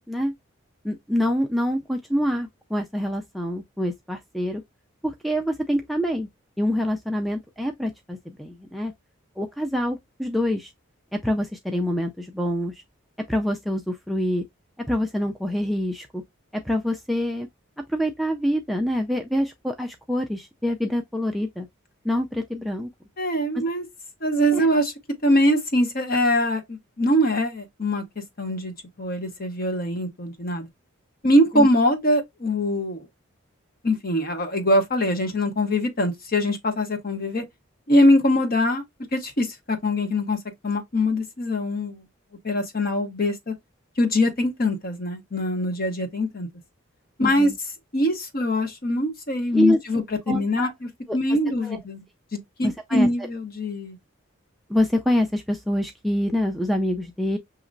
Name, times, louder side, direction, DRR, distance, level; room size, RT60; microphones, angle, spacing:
voice 1, 0.8-4.6 5.0-6.3 6.6-8.9 9.4-10.7 11.1-12.8 13.3-14.4 14.8-16.2 16.5-17.5 17.9-21.7 22.0-22.9 24.5-24.7 31.5-31.7 47.2-47.6 49.5-49.8 50.3-50.7 51.1-51.2 51.6-51.8 52.6-53.1 54.7-57.4, equal, ahead, 0.3 m, -26 dB
voice 2, 23.2-23.8 24.2-24.9 25.2-28.0 28.4-30.7 31.2-33.1 33.8-37.4 37.9-38.8 39.1-40.4 40.6-42.0 42.4-43.5 44.0-46.5 47.2-47.5 47.9-52.0 52.3-54.0, left 1 dB, 45° left, 1.0 m, -23 dB
6.1 x 2.9 x 2.5 m
head